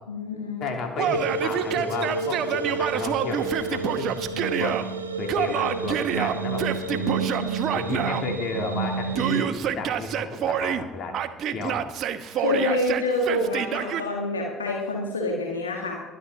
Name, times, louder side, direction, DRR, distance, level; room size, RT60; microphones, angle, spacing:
voice 1, 0.1-0.7 6.9-7.6 12.3-16.0, left 1 dB, 85° left, 0 dB, 1.6 m, -27 dB
voice 2, 0.6-4.8 5.1-7.1 7.7-11.1 11.5-11.8, left 3 dB, 55° left, 2 dB, 3.1 m, -33 dB
Yell, 1.0-4.8 5.3-8.2 9.1-10.8 11.1-14.0, right 9 dB, 55° right, 0.9 m, -27 dB
sound 1, 1.0-9.4, right 4 dB, 90° right, 1.0 m, -30 dB
22.5 x 10.0 x 3.9 m, 1.1 s
figure-of-eight pair, 55°, 0 cm